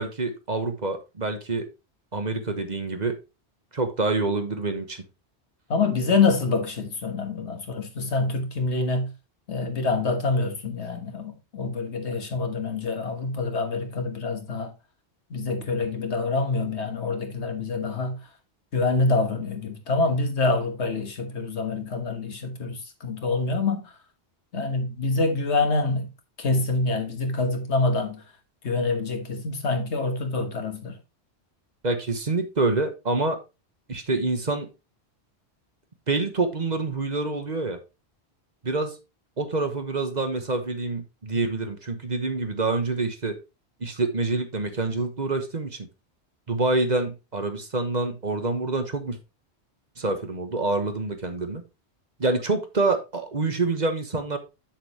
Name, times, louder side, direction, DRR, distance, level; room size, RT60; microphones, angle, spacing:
voice 1, 0.0-1.7 2.1-3.1 3.7-5.0 31.8-33.4 33.9-34.7 36.1-37.8 38.6-39.0 39.4-43.4 43.8-45.9 46.5-49.2 50.0-51.6 52.2-54.4, right 3 dB, 40° right, 1.3 m, -26 dB
voice 2, 5.7-9.1 9.5-14.7 15.3-18.2 18.7-23.9 24.5-26.1 26.4-28.2 28.6-31.0, left 3 dB, 80° left, 1.7 m, -26 dB
7.7 x 7.2 x 3.0 m
omnidirectional pair, 1.1 m